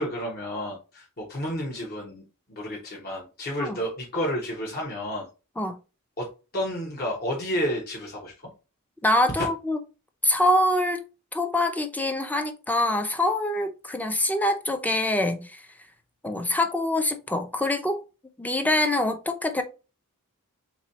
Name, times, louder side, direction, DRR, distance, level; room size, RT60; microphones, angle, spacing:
voice 1, 0.0-5.3 6.2-8.5 9.4-9.5, equal, 45° left, 1.1 m, -31 dB
voice 2, 9.0-9.8 10.2-11.0 11.3-15.7 16.2-18.0 18.4-19.6, left 1 dB, 5° left, 0.5 m, -24 dB
3.7 x 3.1 x 4.0 m
head